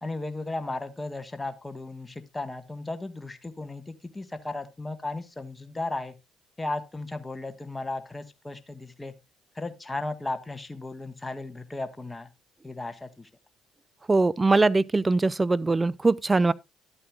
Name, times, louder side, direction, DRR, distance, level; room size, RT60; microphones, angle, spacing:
voice 1, 0.0-6.2 6.6-9.2 9.5-12.3 12.6-13.3, left 2 dB, 15° left, 1.4 m, -35 dB
voice 2, 14.1-16.5, right 3 dB, 25° right, 0.5 m, -22 dB
12.5 x 8.5 x 2.4 m
hypercardioid pair, 60°, 0 cm